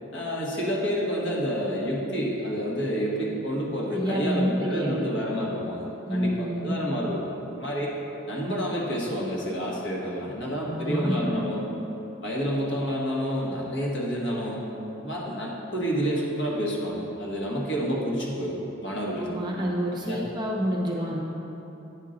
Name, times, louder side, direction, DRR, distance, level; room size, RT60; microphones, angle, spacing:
voice 1, 0.1-7.9 8.3-11.6 12.2-14.6 15.0-19.3 20.1-20.2, equal, 60° left, -3 dB, 1.3 m, -29 dB
voice 2, 3.9-5.0 6.1-6.7 10.6-11.4 19.2-21.2, equal, 20° right, -2 dB, 0.7 m, -28 dB
9.3 x 5.4 x 3.8 m, 3.0 s
head